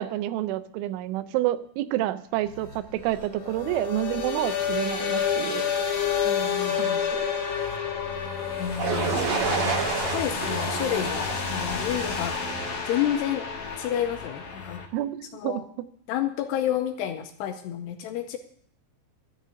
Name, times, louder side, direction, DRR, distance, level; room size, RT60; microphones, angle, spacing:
voice 1, 0.0-5.7 6.7-7.3 14.9-15.6, right 14 dB, 90° right, 13 dB, 3.1 m, -29 dB
sound 1, 2.4-14.8, left 6 dB, 55° left, 1.6 m, -29 dB
voice 2, 6.2-7.1 8.6-13.5 13.8-14.8 15.3-15.6 16.1-18.4, left 11 dB, 80° left, 6 dB, 2.5 m, -30 dB
sound 2, 8.8-12.7, right 5 dB, 55° right, 3.3 m, -29 dB
13.0 x 6.6 x 8.6 m, 0.65 s
omnidirectional pair, 5.4 m